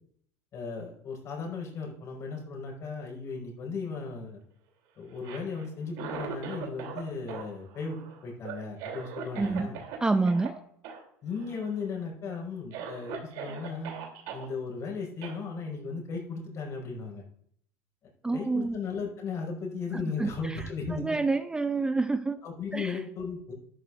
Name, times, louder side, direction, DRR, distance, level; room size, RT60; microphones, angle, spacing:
voice 1, 0.5-4.4 5.0-9.8 11.2-13.9 14.3-17.2 18.3-21.2 22.4-23.5, left 4 dB, 45° left, -1 dB, 5.3 m, -36 dB
Cough, 5.1-7.0 7.3-10.0 10.3-10.5 10.8-11.0 11.3-11.8 12.3-12.4 12.7-14.4 15.2-15.4, right 7 dB, 70° right, 3.1 m, -40 dB
voice 2, 9.4-9.7 10.0-10.5 18.2-18.8 19.9-20.6 20.9-22.4 22.7-23.0, right 3 dB, 10° right, 11 dB, 0.4 m, -28 dB
13.0 x 12.5 x 2.5 m, 0.67 s
supercardioid pair, 120°, 7 cm